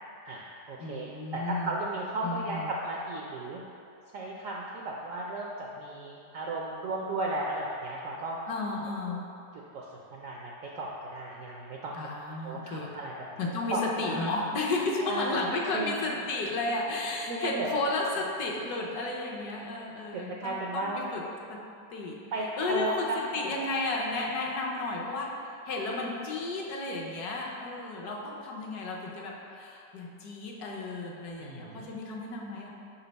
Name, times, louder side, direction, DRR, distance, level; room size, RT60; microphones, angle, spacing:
voice 1, 0.2-3.6 4.1-8.4 9.1-9.2 9.7-13.4 13.7-14.3 15.0-15.4 15.7-16.0 17.3-17.8 20.4-21.1 22.3-23.2 23.5-23.7 31.4-31.9, right 2 dB, 75° right, -3 dB, 0.7 m, -35 dB
voice 2, 0.8-1.8 2.2-2.7 8.5-9.2 12.0-13.0 13.4-20.9 21.1-21.2 21.5-21.6 21.9-22.2 22.6-25.3 25.6-32.7, left 2 dB, 70° left, -1 dB, 1.2 m, -33 dB
5.4 x 4.4 x 3.9 m, 2.6 s
omnidirectional pair, 1.9 m